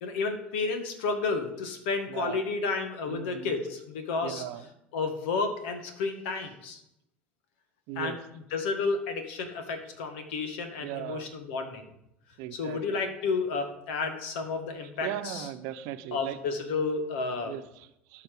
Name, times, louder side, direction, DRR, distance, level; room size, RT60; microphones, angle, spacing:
voice 1, 0.0-4.4 4.9-6.8 7.9-8.2 8.5-11.9 12.5-15.5 16.1-17.5, left 4 dB, 75° left, 6 dB, 1.7 m, -31 dB
voice 2, 2.1-2.4 3.1-3.5 4.2-4.7 7.9-8.2 10.8-11.3 12.4-13.0 15.0-16.4 17.4-18.2, right 12 dB, 65° right, 10 dB, 0.8 m, -38 dB
12.5 x 5.7 x 5.0 m, 0.81 s
hypercardioid pair, 75°, 6 cm